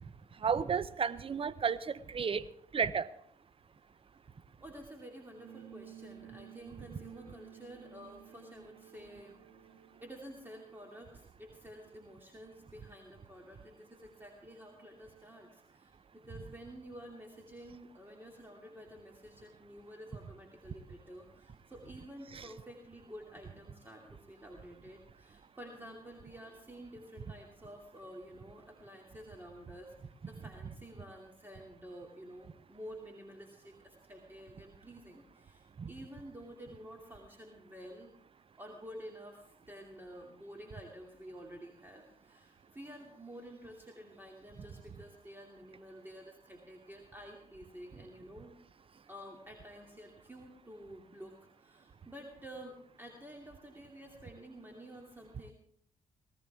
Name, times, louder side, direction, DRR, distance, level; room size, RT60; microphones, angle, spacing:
voice 1, 0.4-2.5 2.7-3.1 22.3-22.5 35.8-35.9, right 6 dB, 35° right, 16 dB, 0.8 m, -32 dB
voice 2, 4.6-9.4 10.0-38.1 38.6-48.5 49.1-55.5, equal, 15° right, 1 dB, 2.7 m, -50 dB
sound 1, 5.4-10.4, right 10 dB, 85° right, 1.8 m, -54 dB
18.5 x 14.5 x 3.6 m, 0.65 s
hypercardioid pair, 50°, 16 cm